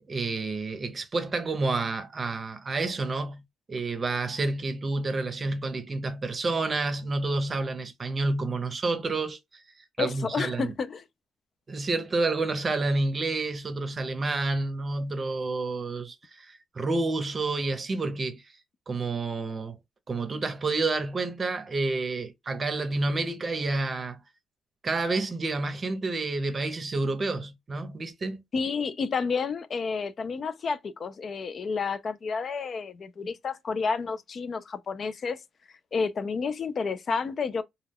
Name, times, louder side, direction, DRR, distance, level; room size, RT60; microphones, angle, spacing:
voice 1, 0.1-3.4 3.7-9.6 10.0-10.7 11.7-18.4 18.9-19.8 20.1-24.2 24.8-28.4, right 3 dB, 35° right, 0.7 m, -29 dB
voice 2, 10.0-11.0 28.5-35.4 35.9-37.6, left 5 dB, 45° left, 0.3 m, -30 dB
2.2 x 2.2 x 3.4 m
cardioid pair, 90°, 0 cm